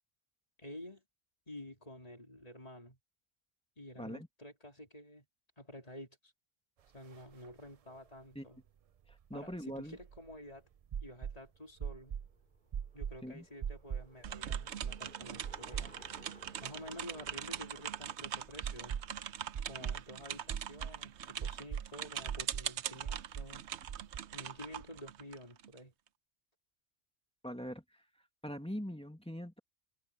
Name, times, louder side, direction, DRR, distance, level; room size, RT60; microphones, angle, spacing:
voice 1, 0.6-1.0 1.5-3.0 3.8-5.3 5.6-6.3 6.9-8.6 9.3-10.7 11.0-12.2 12.9-16.0 16.6-19.0 19.6-23.7 24.3-25.9, left 1 dB, 35° left, 3.7 m, -50 dB
sound 1, 7.1-7.2 7.4-7.5 9.1-10.3 10.9-11.4 11.8-12.3 12.7-13.2 13.6-14.1 14.5-15.0 15.4-16.2 16.5-16.6 18.6-19.2 19.5-20.0 20.5-21.0 21.4-21.9 22.3-22.7 23.0-23.5 23.9-24.2, right 8 dB, 55° right, 0.4 m, -39 dB
voice 2, 9.1-10.0 13.2-13.5 27.4-28.0 28.4-29.6, equal, 5° left, 2.1 m, -42 dB
Bicycle, 11.7-20.0, left 1 dB, 55° left, 6.7 m, -61 dB
sound 2, 14.2-25.8, right 9 dB, 85° right, 1.0 m, -42 dB
omnidirectional pair, 1.1 m